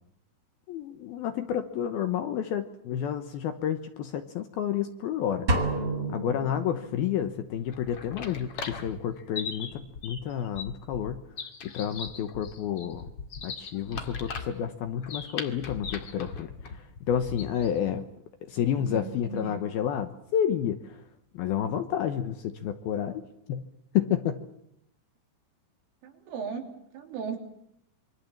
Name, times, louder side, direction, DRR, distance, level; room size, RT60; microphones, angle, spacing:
voice 1, 0.7-5.5 6.1-11.2 11.6-13.1 13.4-18.0 18.5-21.0 21.3-23.2 23.5-23.6 23.9-24.4, left 9 dB, 70° left, 8 dB, 2.4 m, -30 dB
sound 1, 5.5-7.3, right 1 dB, 30° right, 2.2 m, -29 dB
sound 2, 7.6-17.8, left 5 dB, 45° left, 2.0 m, -39 dB
voice 2, 18.9-19.6 26.3-27.4, right 5 dB, 90° right, 3 dB, 5.8 m, -36 dB
26.5 x 24.0 x 7.3 m, 0.75 s
omnidirectional pair, 5.5 m